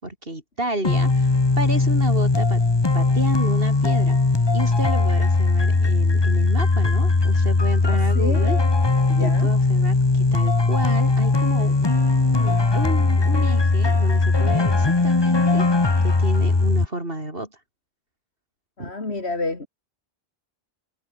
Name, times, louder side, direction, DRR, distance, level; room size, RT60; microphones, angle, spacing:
voice 1, 0.0-2.7 2.9-4.2 4.5-8.6 9.2-15.6 16.0-17.5 18.8-18.9, right 1 dB, 65° right, 6.2 m, -31 dB
sound 1, 0.8-16.9, left 3 dB, 25° left, 1.1 m, -19 dB
voice 2, 7.8-8.5 9.1-9.5 18.8-19.7, left 2 dB, 90° left, 3.7 m, -29 dB
omnidirectional pair, 1.1 m